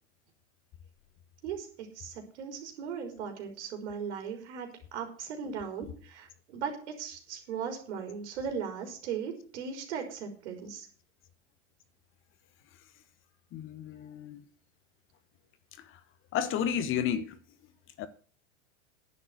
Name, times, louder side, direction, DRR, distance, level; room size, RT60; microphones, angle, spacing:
voice 1, 1.4-10.9, right 6 dB, 65° right, 3.9 m, -38 dB
voice 2, 13.5-14.4 15.8-15.9 16.3-17.4 18.0-18.1, left 8 dB, 35° left, 1.2 m, -31 dB
10.5 x 7.7 x 8.2 m
hypercardioid pair, 110°, 37 cm